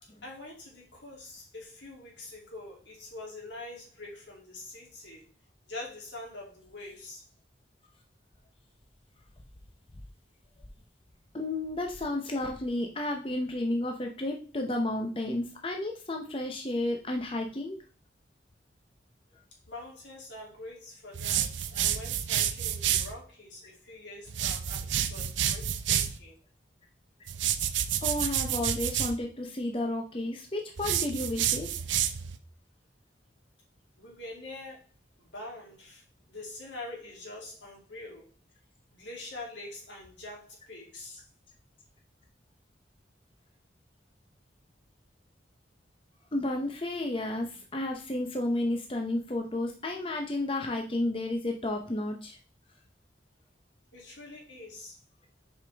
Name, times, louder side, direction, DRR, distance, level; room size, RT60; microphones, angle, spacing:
voice 1, 0.0-5.3 5.6-7.3 19.7-26.4 34.0-34.8 35.2-38.3 38.9-41.2 53.9-55.0, left 2 dB, 80° left, -2 dB, 2.6 m, -45 dB
voice 2, 11.3-17.8 28.0-31.7 46.3-52.4, left 1 dB, 30° left, 3 dB, 0.7 m, -32 dB
sound 1, 21.1-23.1 24.3-26.2 27.3-29.2 30.8-32.4, right 10 dB, 90° right, 0.6 m, -29 dB
6.6 x 5.0 x 3.4 m, 0.37 s
head